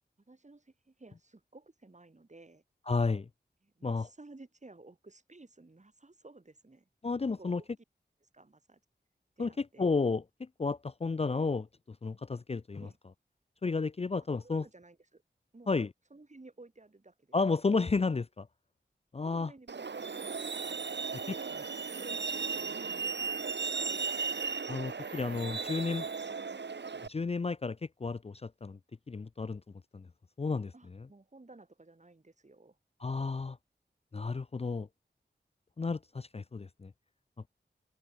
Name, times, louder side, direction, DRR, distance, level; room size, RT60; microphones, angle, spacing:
voice 1, 0.3-2.6 3.6-6.9 7.4-7.7 8.2-8.8 9.4-9.9 12.8-13.0 14.4-15.2 15.5-15.8 16.1-17.4 19.2-21.5 21.8-22.9 23.3-23.4 23.7-24.6 25.0-25.2 25.5-26.4 30.7-32.8, right 2 dB, 40° right, 7.6 m, -56 dB
voice 2, 2.9-3.3 3.8-4.1 7.0-7.6 9.4-12.9 13.6-14.6 15.7-15.9 17.3-18.5 19.1-19.5 21.3-21.6 24.7-26.1 27.0-28.8 29.1-29.6 29.9-30.1 30.4-31.1 33.0-33.6 34.1-34.9 35.8-36.9, left 4 dB, 35° left, 0.5 m, -32 dB
Truck, 19.7-27.1, right 5 dB, 80° right, 1.6 m, -36 dB
open air
wide cardioid pair, 80°, 18 cm